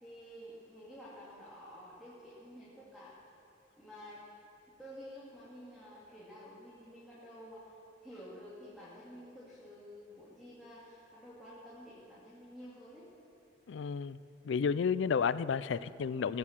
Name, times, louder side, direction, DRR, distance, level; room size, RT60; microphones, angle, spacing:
voice 1, 0.0-3.2 3.8-4.2 4.8-7.7 8.0-13.1, equal, ahead, -9 dB, 2.5 m, -51 dB
voice 2, 13.7-14.2 14.4-16.4, left 6 dB, 80° left, 16 dB, 0.4 m, -31 dB
17.0 x 8.5 x 7.4 m, 2.6 s
head